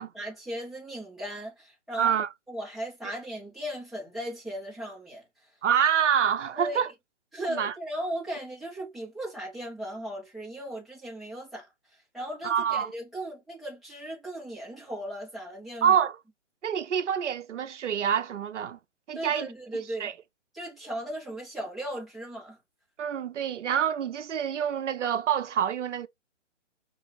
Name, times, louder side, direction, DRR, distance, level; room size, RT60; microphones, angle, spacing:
voice 1, 0.0-5.5 6.5-6.9 7.3-11.7 12.1-16.0 19.1-20.1 20.5-22.6, right 1 dB, ahead, 1.0 m, -37 dB
voice 2, 2.0-2.3 5.6-6.9 7.5-7.7 12.4-12.9 15.8-16.2 16.6-18.8 19.1-19.5 20.0-20.1 23.0-26.1, right 8 dB, 70° right, 0.7 m, -26 dB
4.7 x 2.5 x 4.1 m
hypercardioid pair, 145°, 37 cm